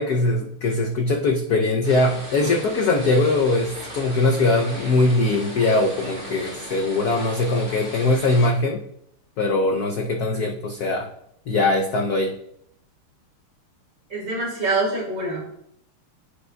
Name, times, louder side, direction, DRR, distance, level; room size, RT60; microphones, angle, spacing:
voice 1, 0.0-8.8 9.4-11.1 11.5-12.3, left 2 dB, 80° left, 3 dB, 0.8 m, -21 dB
sound 1, 1.8-8.5, right 1 dB, 30° right, 3.8 m, -37 dB
voice 2, 14.1-15.4, right 2 dB, 65° right, -4 dB, 4.0 m, -25 dB
14.0 x 5.2 x 2.2 m, 0.74 s
omnidirectional pair, 2.4 m